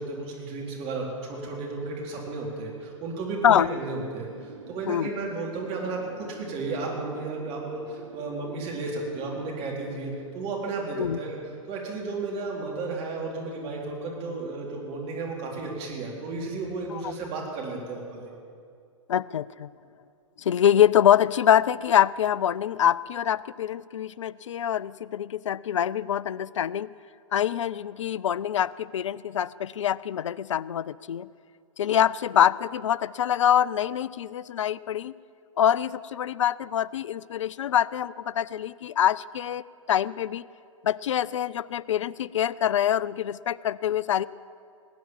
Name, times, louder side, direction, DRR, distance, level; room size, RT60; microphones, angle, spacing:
voice 1, 0.0-11.4 11.7-18.3, right 3 dB, 35° right, -2 dB, 3.7 m, -33 dB
Wind, 3.6-12.3, right 4 dB, 65° right, 1.0 m, -47 dB
voice 2, 19.1-19.7 20.4-26.9 27.3-31.3 31.8-35.1 35.6-39.6 39.9-40.5 40.8-44.3, left 10 dB, 65° left, 21 dB, 0.4 m, -25 dB
19.0 x 9.4 x 7.3 m, 2.3 s
figure-of-eight pair, 100°, 17 cm